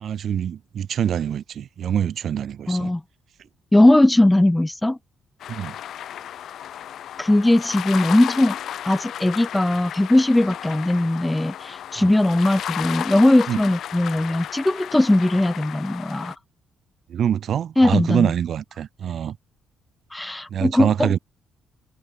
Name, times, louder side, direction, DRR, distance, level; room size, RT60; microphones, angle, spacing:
voice 1, 0.0-2.9 5.5-5.8 12.0-12.1 13.5-13.6 17.1-19.4 20.5-21.2, right 9 dB, 65° right, 0.8 m, -25 dB
voice 2, 2.7-3.0 3.7-5.0 7.2-8.6 8.8-16.3 17.8-18.3 20.1-21.2, left 1 dB, 10° left, 1.0 m, -19 dB
sound 1, 5.4-16.3, left 10 dB, 70° left, 1.5 m, -34 dB
cardioid pair, 90°, 0 cm